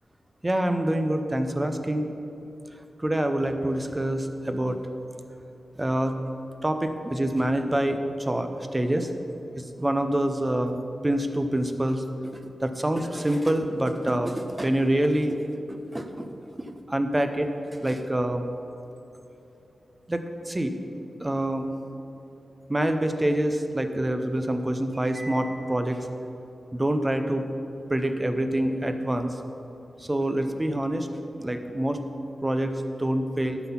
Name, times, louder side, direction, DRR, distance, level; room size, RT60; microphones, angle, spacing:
voice 1, 0.4-2.1 3.0-4.8 5.8-6.2 6.6-9.1 9.6-10.8 11.0-15.4 15.9-16.3 16.6-17.5 17.8-18.5 20.1-20.7 21.2-21.7 22.7-26.1 26.7-27.4 27.9-29.4 30.0-31.1 31.4-32.0 32.4-33.6, right 1 dB, 15° right, 7 dB, 0.5 m, -26 dB
12.0 x 4.0 x 5.7 m, 2.9 s
wide cardioid pair, 155°, 0 cm